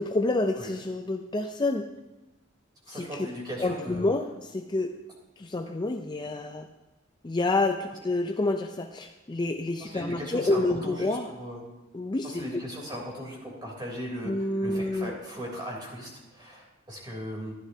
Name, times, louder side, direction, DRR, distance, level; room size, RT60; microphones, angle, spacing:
voice 1, 0.0-1.9 2.9-3.3 3.6-4.9 5.4-6.7 7.2-11.3 11.9-12.4 14.2-15.1, left 2 dB, 25° left, 5 dB, 0.4 m, -28 dB
voice 2, 2.9-4.1 9.8-11.6 12.2-17.5, equal, 20° right, -2 dB, 3.2 m, -38 dB
14.5 x 11.0 x 2.7 m, 1.0 s
head